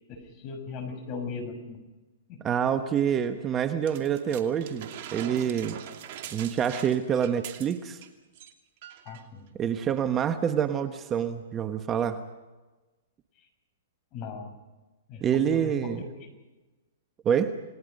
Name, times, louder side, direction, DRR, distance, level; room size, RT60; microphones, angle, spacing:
voice 1, 0.1-1.8 2.3-2.4 9.0-9.4 14.1-14.5 15.1-16.3, left 4 dB, 35° left, 6 dB, 6.5 m, -38 dB
voice 2, 2.4-5.8 6.3-8.0 9.5-12.2 15.2-16.0 17.2-17.6, right 8 dB, 25° right, 9 dB, 1.2 m, -27 dB
sound 1, 3.9-8.1 8.3-8.5 8.8-9.2 10.0-10.1, right 10 dB, 50° right, 2.5 m, -42 dB
29.0 x 19.5 x 5.4 m, 1.2 s
hypercardioid pair, 130°, 0 cm